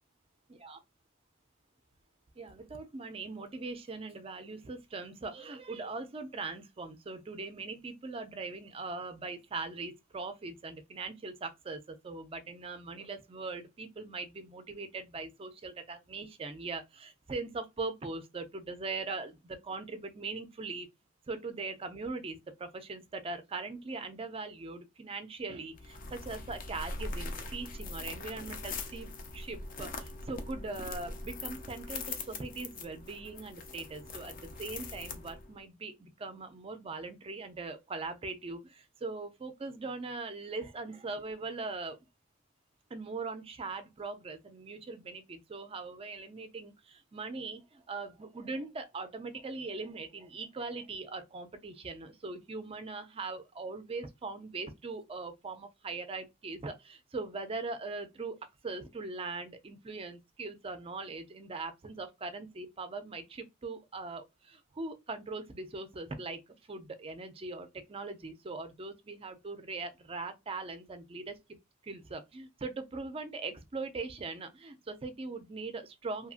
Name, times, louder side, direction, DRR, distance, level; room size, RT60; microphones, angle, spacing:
voice 1, 2.4-20.9 21.3-42.0 42.9-58.4 58.6-66.4 66.7-71.6 71.8-76.3, right 3 dB, 30° right, 0.4 m, -41 dB
sound 1, 25.7-35.6, left 3 dB, 45° left, 0.4 m, -42 dB
2.8 x 2.5 x 2.4 m
head